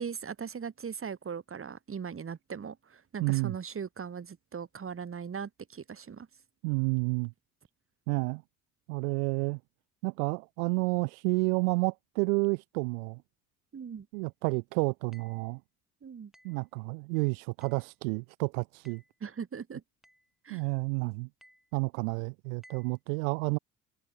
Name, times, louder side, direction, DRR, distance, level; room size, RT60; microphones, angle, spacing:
voice 1, 0.0-6.3 13.7-14.1 16.0-16.3 19.2-19.8 20.4-20.7, right 6 dB, 30° right, 1.9 m, -39 dB
voice 2, 3.2-3.5 6.6-7.3 8.1-8.4 8.9-9.6 10.0-13.2 14.1-15.6 16.4-19.0 20.5-21.3 21.7-23.6, right 32 dB, 65° right, 0.6 m, -30 dB
sound 1, 15.1-15.5 16.3-16.7 17.6-17.9 18.8-19.2 20.0-20.3 21.4-21.7 22.6-23.0, equal, ahead, 2.4 m, -60 dB
figure-of-eight pair, 55°, 45 cm